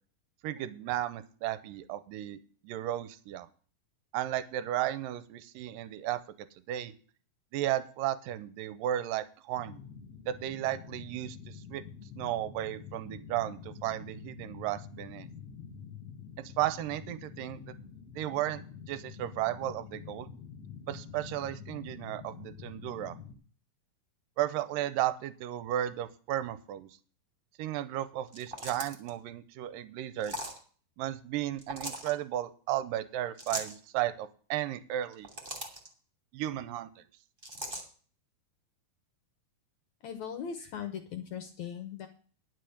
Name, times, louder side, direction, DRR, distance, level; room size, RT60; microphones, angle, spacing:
voice 1, 0.4-2.4 2.6-3.5 4.1-6.2 6.7-6.9 7.5-9.8 10.3-11.8 12.2-15.3 16.6-17.7 18.1-18.6 18.9-20.3 20.9-23.2 24.4-26.9 27.6-30.4 31.0-35.3 36.3-37.0, right 13 dB, 75° right, 15 dB, 2.2 m, -34 dB
sound 1, 9.5-23.3, left 7 dB, 35° left, 1.4 m, -47 dB
sound 2, 28.3-29.1 30.2-30.6 31.6-32.1 33.4-33.8 35.0-35.9 37.4-37.8, right 1 dB, 20° right, 1.7 m, -39 dB
voice 2, 40.0-42.1, left 8 dB, 75° left, 8 dB, 1.7 m, -39 dB
11.5 x 5.2 x 8.5 m, 0.41 s
omnidirectional pair, 4.6 m